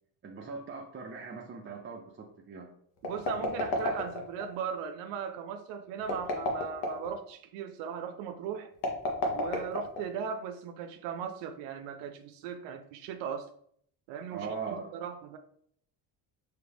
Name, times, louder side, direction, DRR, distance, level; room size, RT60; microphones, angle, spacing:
voice 1, 0.2-2.7 14.3-14.9, right 5 dB, 30° right, -1 dB, 0.6 m, -40 dB
sound 1, 3.0-4.5 6.0-7.1 8.7-10.3, left 2 dB, 85° left, 1.1 m, -31 dB
voice 2, 3.0-8.7 9.3-13.5 14.1-15.4, right 7 dB, 90° right, 6 dB, 0.5 m, -38 dB
4.9 x 2.8 x 3.4 m, 0.66 s
cardioid pair, 110°, 41 cm